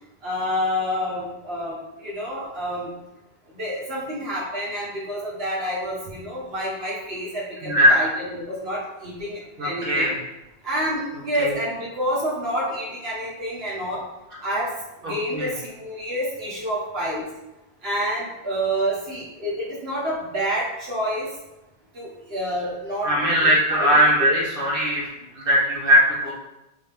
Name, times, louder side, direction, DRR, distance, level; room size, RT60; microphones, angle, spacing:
voice 1, 0.2-2.9 3.5-10.1 10.6-14.0 14.4-14.7 15.0-17.2 17.8-21.3 21.9-23.5 23.8-24.4, equal, 75° right, -6 dB, 1.6 m, -28 dB
voice 2, 7.6-8.0 9.6-10.1 11.4-11.5 15.3-15.5 23.0-25.1 25.3-26.3, equal, 60° right, -5 dB, 1.5 m, -19 dB
5.5 x 2.8 x 3.5 m, 0.96 s
omnidirectional pair, 1.0 m